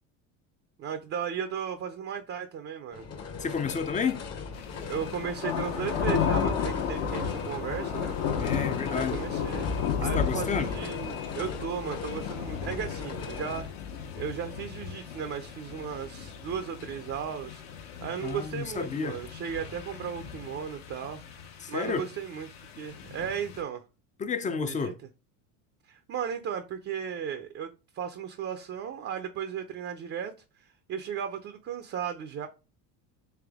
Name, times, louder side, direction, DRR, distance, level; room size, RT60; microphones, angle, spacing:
voice 1, 0.8-3.1 4.9-8.1 8.9-9.7 10.0-13.7 14.2-17.6 18.0-23.8 24.7-24.9 25.9-27.7 27.9-30.3 30.6-32.5, right 8 dB, 35° right, 0.5 m, -35 dB
sound 1, 2.9-13.6, left 5 dB, 35° left, 0.9 m, -39 dB
voice 2, 3.4-4.2 8.4-9.2 10.0-10.7 18.2-19.2 21.6-22.0 24.2-25.0, left 6 dB, 20° left, 0.4 m, -31 dB
sound 2, 4.5-23.6, left 7 dB, 70° left, 1.1 m, -34 dB
3.4 x 3.2 x 3.5 m
supercardioid pair, 95°, 42 cm